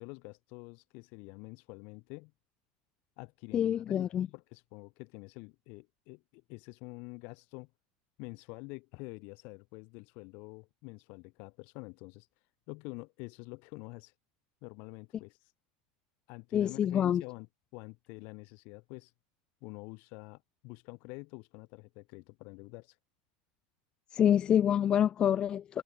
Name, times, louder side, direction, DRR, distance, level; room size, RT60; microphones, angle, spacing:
voice 1, 0.0-2.3 3.2-7.7 8.2-12.3 12.7-14.1 14.6-15.4 16.3-17.5 17.7-19.1 19.6-22.9, left 30 dB, 45° left, 2.2 m, -47 dB
voice 2, 3.5-4.3 16.5-17.2 24.1-25.8, left 9 dB, 20° left, 0.6 m, -26 dB
supercardioid pair, 175°, 4 cm